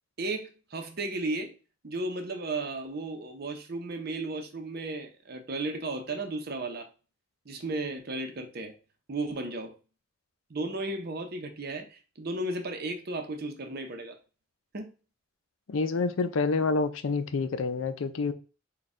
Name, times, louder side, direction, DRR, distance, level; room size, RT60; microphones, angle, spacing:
voice 1, 0.2-1.6 1.8-6.9 7.5-8.7 9.1-9.7 10.5-14.2 14.7-14.9, right 2 dB, 50° right, 0.7 m, -34 dB
voice 2, 15.7-18.3, left 4 dB, 85° left, 0.5 m, -28 dB
4.2 x 2.3 x 3.6 m
head